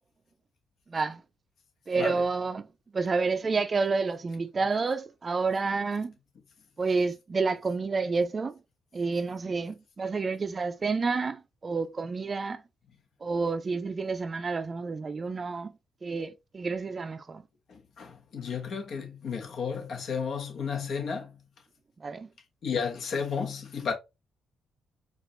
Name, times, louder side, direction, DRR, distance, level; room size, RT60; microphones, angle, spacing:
voice 1, 0.9-1.2 1.9-2.7 2.9-6.1 6.8-8.6 8.9-12.6 13.2-15.7 16.0-17.4 22.0-22.3, right 4 dB, 35° right, 0.4 m, -29 dB
voice 2, 17.7-21.3 22.6-23.9, left 6 dB, 60° left, 1.2 m, -33 dB
4.8 x 2.5 x 3.1 m
cardioid pair, 90°, 0 cm